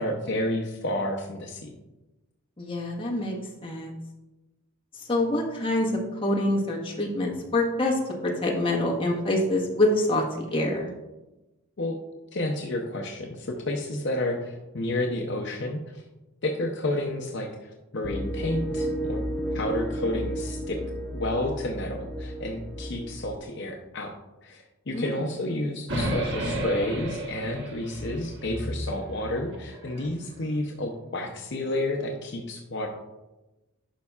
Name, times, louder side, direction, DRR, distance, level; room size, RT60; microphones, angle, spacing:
voice 1, 0.0-1.8 11.8-12.0 12.3-16.0 16.4-19.2 19.5-20.8 21.1-24.1 24.4-32.9, left 1 dB, 55° left, 2 dB, 0.6 m, -30 dB
voice 2, 2.6-3.4 3.6-3.9 4.9-10.9 24.9-25.2, left 1 dB, 25° left, -2 dB, 1.3 m, -26 dB
sound 1, 18.0-23.4, right 1 dB, 5° left, 0.6 m, -32 dB
sound 2, 25.9-30.1, right 1 dB, 55° right, 1.2 m, -32 dB
11.0 x 5.3 x 2.4 m, 1.0 s
head